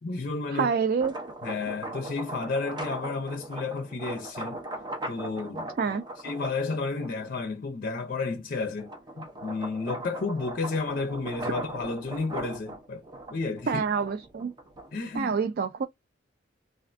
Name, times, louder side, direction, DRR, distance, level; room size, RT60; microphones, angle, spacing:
voice 1, 0.0-0.7 1.4-4.6 5.1-5.7 6.2-13.0 13.3-13.8 14.9-15.3, left 3 dB, 50° left, 0.5 m, -32 dB
voice 2, 0.5-1.1 5.8-6.0 13.7-14.5 15.1-15.9, right 6 dB, 50° right, 0.3 m, -27 dB
sound 1, 0.8-7.4 8.0-15.1, right 1 dB, 25° right, 0.9 m, -39 dB
3.3 x 2.4 x 2.5 m
head